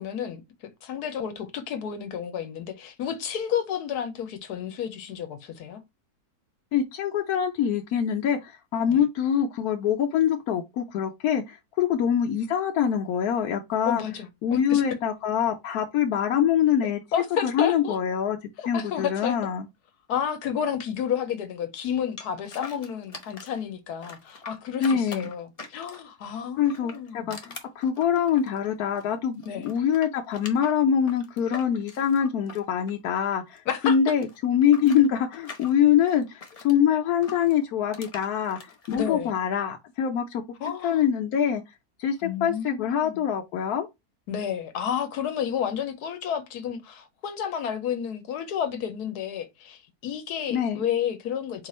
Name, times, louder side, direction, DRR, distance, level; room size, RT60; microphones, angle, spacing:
voice 1, 0.0-5.8 8.9-9.0 13.9-14.8 17.1-18.0 18.6-19.4 20.1-27.4 29.5-29.7 33.7-34.0 38.9-39.3 40.6-41.0 42.2-43.2 44.3-51.7, left 8 dB, 90° left, 1.3 m, -31 dB
voice 2, 6.7-14.0 14.4-17.0 17.4-18.4 18.7-19.7 24.8-25.3 26.6-40.4 40.8-41.6 42.0-43.9 50.5-50.8, left 8 dB, 75° left, 1.1 m, -24 dB
sound 1, 22.2-23.6 24.0-26.2 26.6-29.1 29.4-33.6 33.8-36.8 37.2-39.1, left 4 dB, 30° left, 0.7 m, -43 dB
4.4 x 2.4 x 4.2 m
omnidirectional pair, 1.6 m